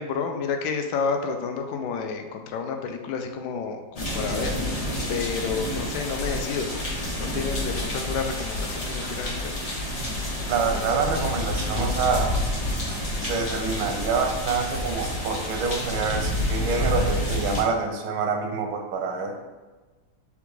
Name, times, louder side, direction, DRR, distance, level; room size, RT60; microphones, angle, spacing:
voice 1, 0.0-4.5 5.1-6.7 7.2-9.6, left 5 dB, 75° left, 5 dB, 1.0 m, -30 dB
sound 1, 4.0-17.6, left 1 dB, 55° left, 0.4 m, -29 dB
voice 2, 10.5-12.5 13.2-19.4, right 4 dB, 85° right, 4 dB, 1.5 m, -26 dB
6.8 x 2.4 x 3.1 m, 1.2 s
omnidirectional pair, 2.2 m